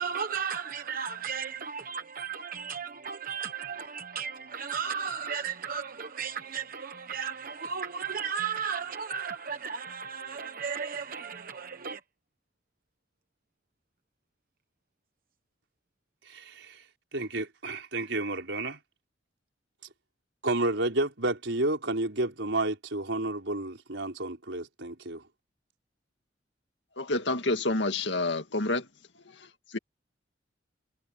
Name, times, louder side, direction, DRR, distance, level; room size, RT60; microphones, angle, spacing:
voice 1, 0.0-12.0, right 6 dB, 50° right, 1.0 m, -35 dB
voice 2, 16.3-16.8 17.1-18.8 20.4-25.2, right 2 dB, 80° right, 4.7 m, -31 dB
voice 3, 27.0-28.9 29.3-29.8, left 2 dB, 75° left, 2.2 m, -29 dB
head